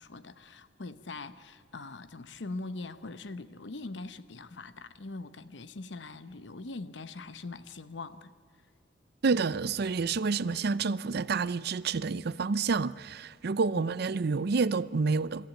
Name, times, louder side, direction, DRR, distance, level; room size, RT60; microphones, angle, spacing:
voice 1, 0.0-8.3 13.7-14.0, left 3 dB, 70° left, 0.9 m, -42 dB
voice 2, 9.2-15.5, right 4 dB, 60° right, 0.5 m, -29 dB
22.5 x 14.0 x 9.1 m
head